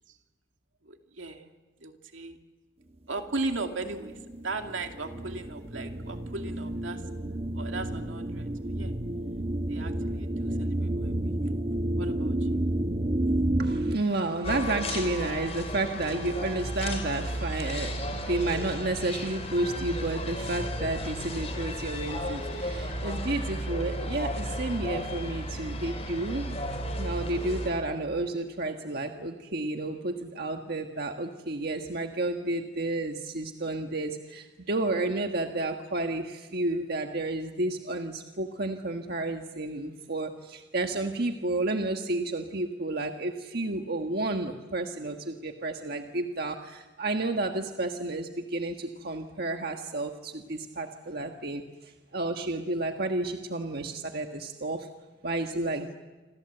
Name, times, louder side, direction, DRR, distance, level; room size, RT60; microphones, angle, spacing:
voice 1, 0.8-1.5 1.8-2.4 3.1-4.2 4.4-7.0 7.6-8.9 9.7-11.3 12.0-12.5, right 3 dB, 75° right, 4 dB, 2.5 m, -37 dB
sound 1, 3.8-14.0, right 1 dB, 30° right, 1.1 m, -30 dB
voice 2, 13.6-26.6 27.0-51.6 52.1-54.9 55.2-55.9, right 2 dB, 55° right, 4 dB, 1.5 m, -31 dB
sound 2, 14.4-27.7, equal, 35° left, 4.4 m, -34 dB
27.5 x 26.5 x 8.0 m, 1.3 s
head